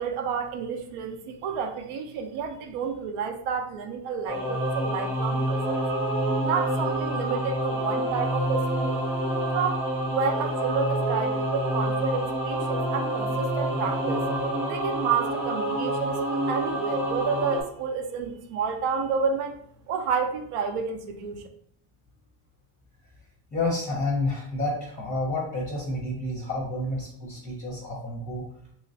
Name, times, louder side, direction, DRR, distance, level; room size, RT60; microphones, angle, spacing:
voice 1, 0.0-5.8 6.4-9.0 9.5-14.2 14.7-19.6 19.9-21.4, right 6 dB, 85° right, 6 dB, 0.7 m, -30 dB
Singing / Musical instrument, 4.3-17.6, right 1 dB, 25° right, 0.8 m, -27 dB
voice 2, 23.5-28.5, left 2 dB, 15° left, -2 dB, 0.5 m, -29 dB
3.2 x 3.0 x 2.7 m, 0.67 s
cardioid pair, 170°, 50 cm